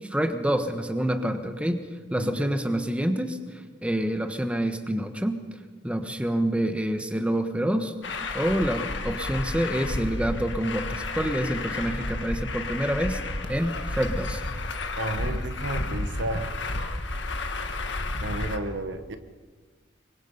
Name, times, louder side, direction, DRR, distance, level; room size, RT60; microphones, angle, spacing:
voice 1, 0.1-1.8 2.1-3.4 3.8-5.4 5.8-8.0 8.3-14.4, right 1 dB, 5° right, 7 dB, 1.2 m, -27 dB
voice 2, 2.1-2.5 15.0-16.5 18.2-19.2, right 2 dB, 75° right, 9 dB, 1.4 m, -32 dB
Truck, 8.0-18.6, left 2 dB, 70° left, 1.8 m, -31 dB
25.0 x 22.5 x 5.6 m, 1.5 s
head